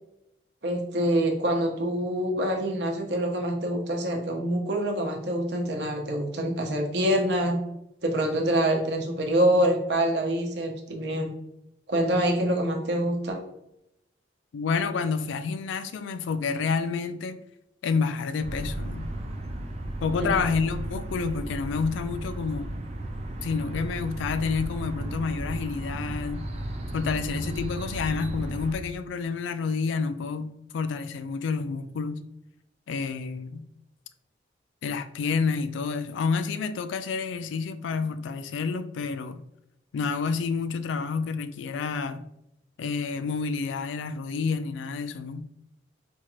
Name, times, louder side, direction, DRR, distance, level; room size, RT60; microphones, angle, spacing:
voice 1, 0.6-7.6 8.0-11.3 11.9-13.4 20.2-20.3, right 1 dB, 65° right, 0.7 m, -25 dB
voice 2, 14.5-17.4 17.8-19.1 20.0-22.7 23.4-26.5 26.9-32.2 32.9-33.6 34.8-39.4 39.9-42.2 42.8-45.5, left 5 dB, 85° left, 0.3 m, -29 dB
sound 1, 18.4-28.8, right 1 dB, 35° right, 0.5 m, -34 dB
4.3 x 2.4 x 3.0 m
head